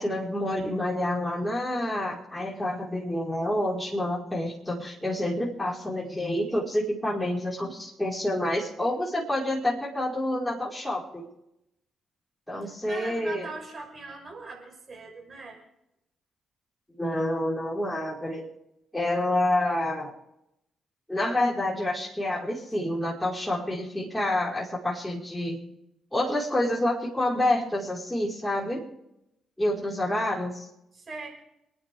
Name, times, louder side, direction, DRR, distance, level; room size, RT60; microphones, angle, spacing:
voice 1, 0.0-11.3 12.5-13.5 17.0-18.5 18.9-20.1 21.1-25.6 26.1-28.8 29.6-30.7, left 1 dB, 10° left, -4 dB, 5.0 m, -28 dB
voice 2, 12.6-15.6 30.9-31.3, right 3 dB, 40° right, 1 dB, 6.1 m, -40 dB
29.0 x 10.0 x 3.6 m, 0.83 s
hypercardioid pair, 40°, 0 cm